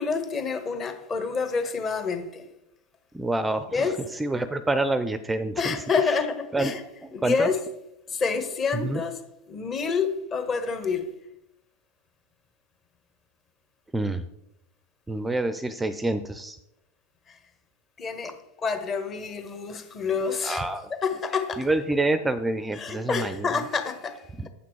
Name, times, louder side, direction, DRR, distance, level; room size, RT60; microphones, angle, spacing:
voice 1, 0.0-2.5 3.7-4.0 5.6-6.8 7.1-7.6 8.1-9.2 9.5-11.1 17.3-17.4 18.0-20.6 21.0-21.7 22.7-24.5, left 5 dB, 30° left, 1.3 m, -28 dB
voice 2, 3.1-5.8 6.5-6.7 7.0-7.5 8.8-9.0 13.9-14.3 15.1-16.6 20.4-20.9 21.6-23.5 24.4-24.5, right 2 dB, 10° right, 0.5 m, -27 dB
8.3 x 5.9 x 4.6 m
hypercardioid pair, 95°, 0 cm